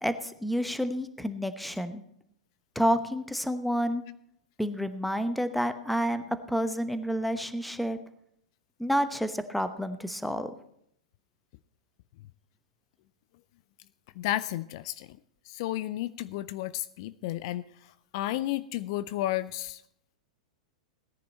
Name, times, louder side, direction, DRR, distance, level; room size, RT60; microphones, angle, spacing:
voice 1, 0.0-2.0 2.7-4.0 4.6-6.2 6.5-8.0 8.8-10.5, equal, ahead, 10 dB, 0.9 m, -29 dB
voice 2, 14.2-15.2 15.5-19.8, left 15 dB, 50° left, 16 dB, 0.4 m, -32 dB
17.0 x 10.0 x 4.4 m, 0.73 s
figure-of-eight pair, 100°, 4 cm